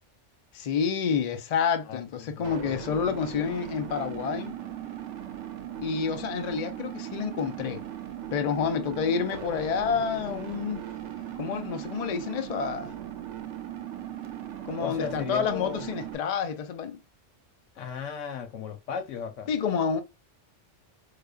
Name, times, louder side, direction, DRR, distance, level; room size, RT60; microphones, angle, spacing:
voice 1, 0.5-4.6 5.8-7.8 8.3-10.9 11.4-12.9 14.7-17.0 19.5-20.0, left 6 dB, 55° left, 0.4 m, -29 dB
voice 2, 1.9-2.9 14.8-15.8 17.8-19.5, left 7 dB, 85° left, 1.1 m, -36 dB
sound 1, 2.4-16.2, right 10 dB, 80° right, 0.9 m, -38 dB
4.8 x 2.2 x 2.3 m
omnidirectional pair, 1.3 m